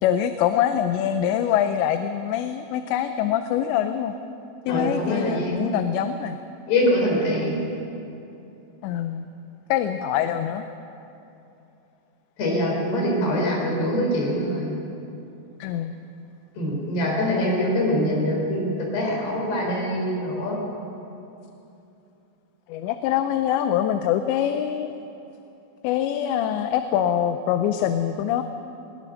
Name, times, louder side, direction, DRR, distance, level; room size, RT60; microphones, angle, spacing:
voice 1, 0.0-4.1 4.7-6.4 8.8-9.3 9.7-10.7 15.6-15.9 22.7-25.0 25.8-28.4, left 10 dB, 80° left, 8 dB, 2.9 m, -24 dB
voice 2, 4.7-5.7 6.7-7.5 12.4-14.7 16.6-20.6, left 1 dB, 65° left, -1 dB, 6.4 m, -24 dB
21.0 x 19.5 x 6.4 m, 2.8 s
omnidirectional pair, 5.2 m